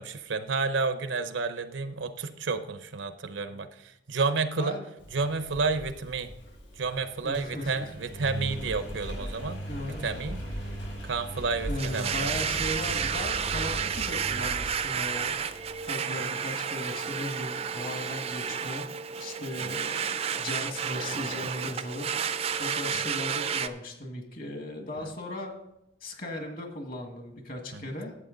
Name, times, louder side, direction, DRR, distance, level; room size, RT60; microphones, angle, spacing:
voice 1, 0.0-4.8 5.1-6.3 6.8-9.6 10.0-10.4 11.0-12.3 19.6-19.7 24.9-25.1 27.7-27.9, right 4 dB, 85° right, 10 dB, 0.7 m, -30 dB
Engine, 5.0-15.9, equal, 85° left, 4.4 m, -39 dB
voice 2, 7.2-7.9 9.7-10.1 11.7-15.4 15.9-18.8 19.2-25.5 26.0-28.1, left 1 dB, 50° left, 4 dB, 1.7 m, -37 dB
Domestic sounds home sounds, 11.8-23.7, right 7 dB, 35° right, 0.4 m, -31 dB
12.0 x 8.0 x 3.9 m, 0.83 s
head